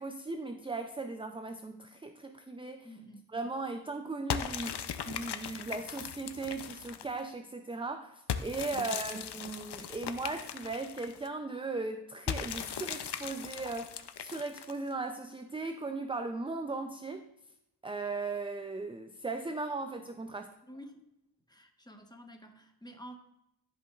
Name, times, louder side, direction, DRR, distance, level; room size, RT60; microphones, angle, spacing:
voice 1, 0.0-2.9 3.3-17.3 17.8-20.5, right 3 dB, 15° right, 7 dB, 0.3 m, -38 dB
voice 2, 2.8-3.2 8.7-9.3 20.7-21.0 21.5-23.2, equal, 10° left, 4 dB, 0.9 m, -50 dB
sound 1, 4.3-7.2 8.3-11.3 12.3-14.9, left 8 dB, 80° left, 0.5 m, -38 dB
13.0 x 5.2 x 2.3 m, 0.82 s
wide cardioid pair, 70°, 40 cm